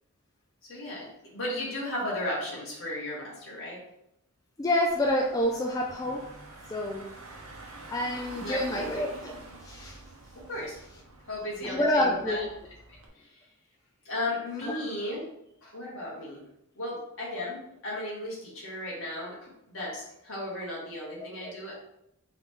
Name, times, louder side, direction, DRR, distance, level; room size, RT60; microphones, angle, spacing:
voice 1, 0.7-3.8 8.3-9.1 10.3-10.8 11.3-12.4 12.9-13.5 14.0-15.2 15.6-16.4 16.7-21.8, left 1 dB, 60° left, -6 dB, 1.6 m, -35 dB
voice 2, 4.6-6.3 6.7-7.1 7.9-10.0 11.6-12.5 14.6-14.8 21.4-21.5, left 1 dB, 15° left, -1 dB, 0.3 m, -28 dB
Car / Engine, 4.9-13.1, right 2 dB, 70° right, 0.8 m, -47 dB
3.8 x 3.2 x 3.7 m, 0.79 s
head